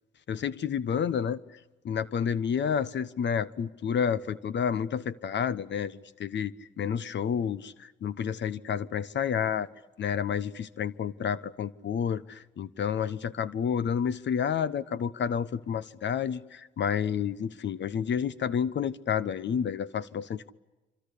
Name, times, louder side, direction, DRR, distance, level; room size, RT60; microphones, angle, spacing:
voice 1, 0.3-1.4 1.8-7.7 8.0-9.7 10.0-12.2 12.6-20.5, left 7 dB, 60° left, 17 dB, 1.1 m, -30 dB
26.5 x 26.0 x 8.4 m, 1.1 s
supercardioid pair, 60°, 21 cm